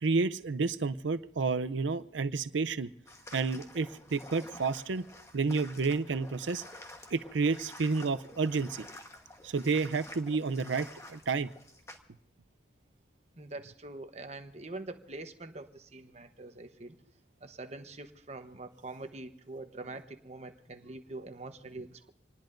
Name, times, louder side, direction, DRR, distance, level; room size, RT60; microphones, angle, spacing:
voice 1, 0.0-2.9 3.3-5.1 5.3-6.6 7.1-8.9 9.4-11.5, right 4 dB, 85° right, 12 dB, 0.6 m, -30 dB
sound 1, 3.1-12.0, left 1 dB, 15° left, 1.2 m, -50 dB
voice 2, 13.4-17.0 17.4-22.1, right 2 dB, 35° right, 7 dB, 1.0 m, -44 dB
27.0 x 19.5 x 2.6 m, 0.71 s
head